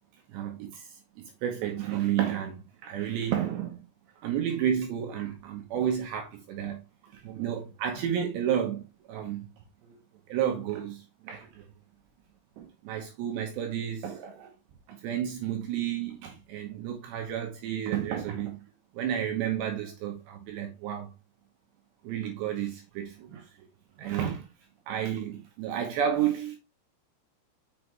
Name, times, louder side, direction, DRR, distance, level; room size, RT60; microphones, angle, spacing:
voice 1, 0.3-0.9 1.4-3.9 4.2-9.5 9.8-10.0 10.3-11.7 12.6-14.5 14.9-18.6 18.9-21.1 22.0-23.5 24.0-24.5 24.9-26.6, right 9 dB, 75° right, 2.8 m, -31 dB
6.7 x 6.1 x 3.3 m
omnidirectional pair, 6.0 m